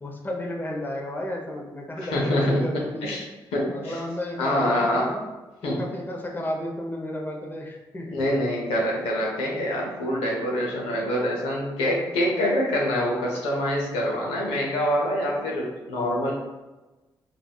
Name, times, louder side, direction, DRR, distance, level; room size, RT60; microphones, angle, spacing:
voice 1, 0.0-3.1 3.7-5.3 5.6-8.3, left 1 dB, 20° left, 0 dB, 0.7 m, -33 dB
voice 2, 2.1-3.2 3.5-3.9 4.4-5.1 5.6-5.8 8.1-16.3, left 1 dB, 85° left, -3 dB, 0.6 m, -25 dB
3.3 x 2.4 x 2.3 m, 1.1 s
supercardioid pair, 45°, 10 cm